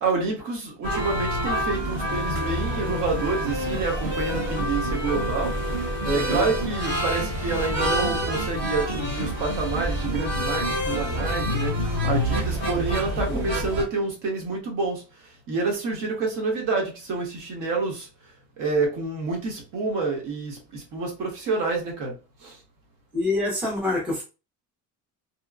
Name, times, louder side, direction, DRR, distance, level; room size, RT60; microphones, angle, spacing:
voice 1, 0.0-5.5 6.1-11.7 12.0-15.0 15.5-18.1 18.6-22.1 22.4-22.5, right 3 dB, 55° right, 1.1 m, -28 dB
sound 1, 0.8-13.8, equal, 30° right, 1.0 m, -27 dB
voice 2, 6.0-6.5 13.3-13.5 23.1-24.2, left 1 dB, 5° right, 0.5 m, -26 dB
2.9 x 2.0 x 2.4 m
cardioid pair, 170°, 38 cm